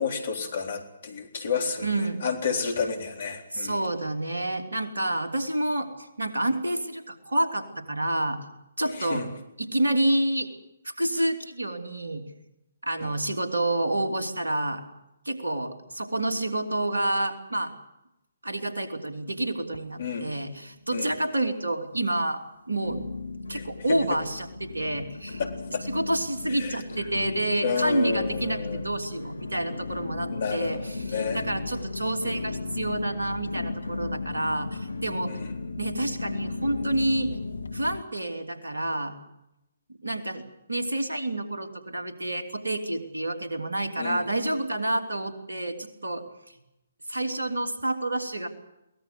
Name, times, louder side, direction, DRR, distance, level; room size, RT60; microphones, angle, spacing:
voice 1, 0.0-1.9 2.2-3.8 9.0-9.3 13.0-13.1 20.0-20.3 20.9-21.1 23.5-23.6 23.9-24.2 25.4-25.8 26.5-26.8 27.6-28.8 30.3-31.4 35.3-35.8 44.0-44.2, left 5 dB, 50° left, 5 dB, 3.8 m, -30 dB
voice 2, 1.8-2.2 3.5-8.4 8.8-9.3 9.6-10.5 10.8-12.2 12.8-14.8 15.2-17.7 18.4-23.0 23.5-25.4 25.8-35.3 35.8-37.3 37.7-39.1 40.0-40.4 40.7-46.2 47.1-48.5, right 1 dB, 75° right, 5 dB, 2.9 m, -28 dB
sound 1, 19.7-20.6 20.9-21.5 22.0-22.1 22.8-38.0, left 3 dB, 75° left, 1.0 m, -35 dB
23.0 x 18.0 x 8.1 m, 0.87 s
figure-of-eight pair, 135°, 0 cm